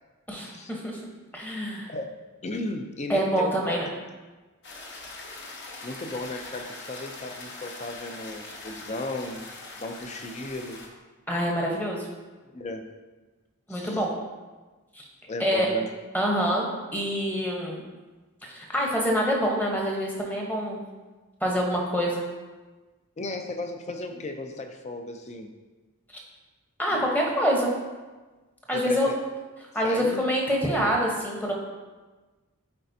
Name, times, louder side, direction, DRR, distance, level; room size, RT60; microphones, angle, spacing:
voice 1, 0.3-1.0 1.3-1.9 3.1-3.9 11.3-12.1 13.7-14.1 15.0-15.1 15.4-15.7 16.1-17.8 18.4-20.8 21.4-22.2 26.8-27.7 28.7-29.1 29.7-31.5, equal, 10° left, -1 dB, 0.9 m, -26 dB
voice 2, 2.4-3.5 4.9-5.0 5.8-9.5 9.8-10.8 12.5-12.8 13.7-14.0 15.3-15.9 23.2-25.5 26.9-27.1 28.7-29.2 29.8-30.2, left 2 dB, 30° left, 5 dB, 0.5 m, -35 dB
sound 1, 4.6-10.9, left 2 dB, 50° left, 0.9 m, -42 dB
8.8 x 4.2 x 2.7 m, 1.3 s
head